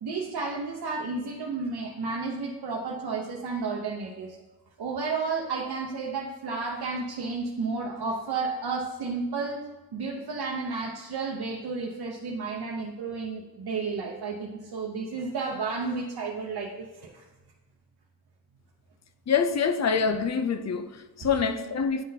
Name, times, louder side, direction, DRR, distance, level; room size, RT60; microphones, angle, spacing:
voice 1, 0.0-4.4 4.8-9.6 9.9-17.2, right 4 dB, 85° right, 0.7 m, -32 dB
voice 2, 19.3-22.0, left 6 dB, 45° left, 0.5 m, -26 dB
9.7 x 3.8 x 2.7 m
wide cardioid pair, 125°, 37 cm